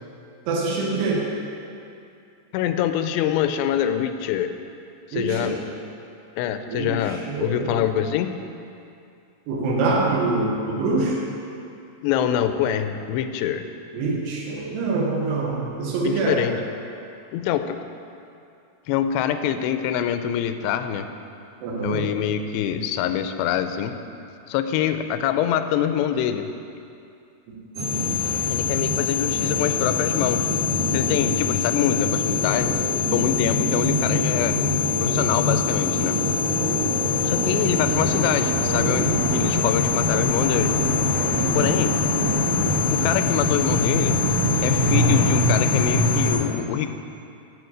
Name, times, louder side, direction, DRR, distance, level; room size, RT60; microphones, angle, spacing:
voice 1, 0.5-1.3 5.1-5.6 6.7-7.8 9.5-11.2 13.9-16.4 21.6-22.1 27.5-27.6 41.4-41.8, right 3 dB, 85° right, -3 dB, 3.4 m, -25 dB
voice 2, 2.5-4.5 5.1-5.6 6.4-8.3 12.0-13.7 16.0-16.6 17.3-17.8 18.9-21.1 21.8-23.9 24.5-26.5 28.5-30.5 30.9-32.7 33.1-34.6 35.0-36.2 37.2-40.7 41.5-42.0 42.9-44.2 44.6-46.9, left 10 dB, 90° left, 9 dB, 2.7 m, -25 dB
sound 1, 27.7-46.3, left 3 dB, 50° right, 1.6 m, -22 dB
12.0 x 4.8 x 6.6 m, 2.6 s
omnidirectional pair, 4.8 m